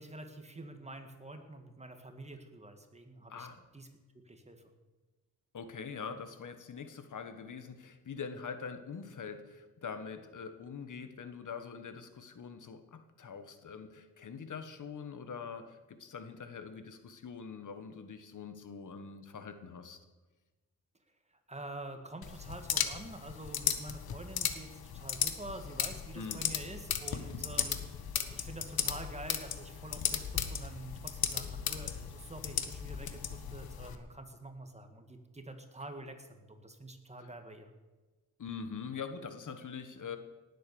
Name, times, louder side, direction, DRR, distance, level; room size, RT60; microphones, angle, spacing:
voice 1, 0.0-3.5 3.7-3.9 4.3-4.6 21.5-37.7, right 2 dB, 15° right, 6 dB, 1.9 m, -47 dB
voice 2, 3.3-3.6 5.5-20.0 26.1-26.4 37.2-37.3 38.4-40.2, left 6 dB, 55° left, 9 dB, 1.4 m, -44 dB
sound 1, 22.2-33.9, left 8 dB, 75° left, 1.4 m, -36 dB
18.5 x 8.4 x 7.0 m, 1.2 s
cardioid pair, 90°, 37 cm